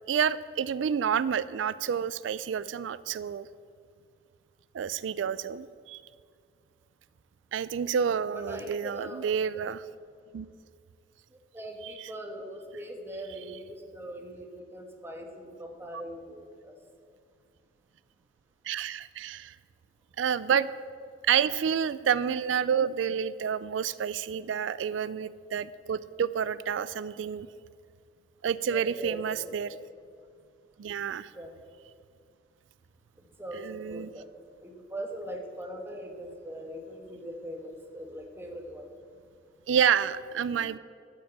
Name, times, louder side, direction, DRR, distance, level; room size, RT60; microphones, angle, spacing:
voice 1, 0.1-3.5 4.7-6.0 7.5-9.8 10.3-10.5 12.0-12.1 18.7-19.5 20.2-20.7 21.2-27.5 28.4-29.7 30.8-31.3 33.5-34.1 39.7-40.8, right 7 dB, 90° right, 16 dB, 0.4 m, -29 dB
voice 2, 8.0-9.3 11.5-16.7 28.7-29.5 31.3-31.5 33.4-34.3 34.6-38.9, equal, 15° right, 3 dB, 1.4 m, -41 dB
12.5 x 6.1 x 8.6 m, 2.2 s
head